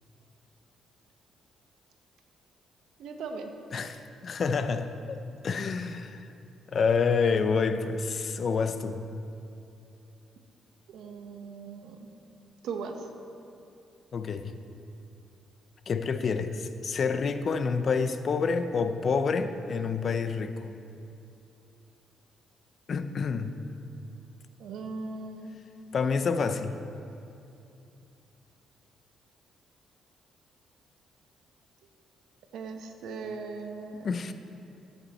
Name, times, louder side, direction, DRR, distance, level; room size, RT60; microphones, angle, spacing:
voice 1, 3.0-3.5 3.8-3.9 10.9-12.0 12.6-13.0 24.6-25.6 32.5-34.1, right 4 dB, 80° right, 4 dB, 1.1 m, -38 dB
voice 2, 3.7-5.2 5.4-6.3 6.7-9.0 14.1-14.5 15.9-20.7 22.9-23.5 25.9-26.7 34.0-34.3, left 5 dB, 50° left, 10 dB, 0.6 m, -28 dB
14.0 x 8.3 x 4.3 m, 2.6 s
cardioid pair, 90°, 0 cm